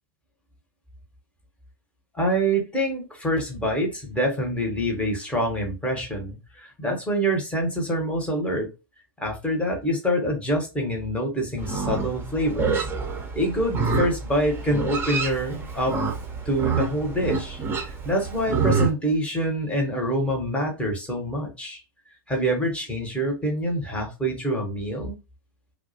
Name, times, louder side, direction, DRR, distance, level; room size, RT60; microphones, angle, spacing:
voice 1, 2.1-8.7 9.2-12.8 13.3-16.0 16.5-17.6 17.8-21.8 22.3-25.1, equal, 10° left, 0.8 m, -26 dB
Livestock farm animals working animals, 11.6-18.9, right 4 dB, 20° right, 0.6 m, -27 dB
2.2 x 2.0 x 2.6 m
hypercardioid pair, 105°, 12 cm